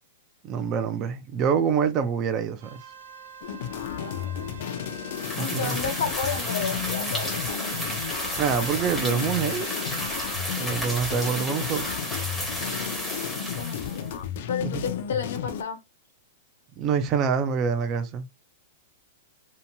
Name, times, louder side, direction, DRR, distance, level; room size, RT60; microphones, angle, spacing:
voice 1, 0.4-2.8 5.4-5.8 8.4-9.7 10.6-11.9 14.6-14.9 16.8-18.3, right 7 dB, 25° right, 0.3 m, -26 dB
sound 1, 2.6-10.4, right 4 dB, 80° right, 0.5 m, -43 dB
sound 2, 3.4-15.6, left 9 dB, 50° left, 0.4 m, -33 dB
voice 2, 3.9-4.8 5.4-7.7 13.5-14.2 14.5-15.8, left 6 dB, 85° left, 0.9 m, -32 dB
sound 3, 5.1-14.2, equal, ahead, 0.7 m, -32 dB
2.8 x 2.2 x 2.6 m
supercardioid pair, 170°, 0 cm